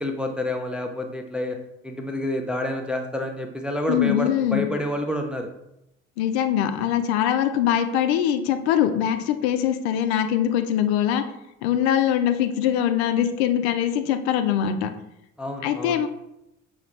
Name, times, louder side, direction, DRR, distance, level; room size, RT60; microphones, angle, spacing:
voice 1, 0.0-1.6 1.8-5.5 15.4-16.0, left 1 dB, 5° right, 3 dB, 0.4 m, -28 dB
voice 2, 3.9-4.7 6.2-11.2 11.6-14.9 15.6-16.1, left 10 dB, 65° left, 8 dB, 0.5 m, -22 dB
5.8 x 2.4 x 3.1 m, 0.84 s
figure-of-eight pair, 55°, 35 cm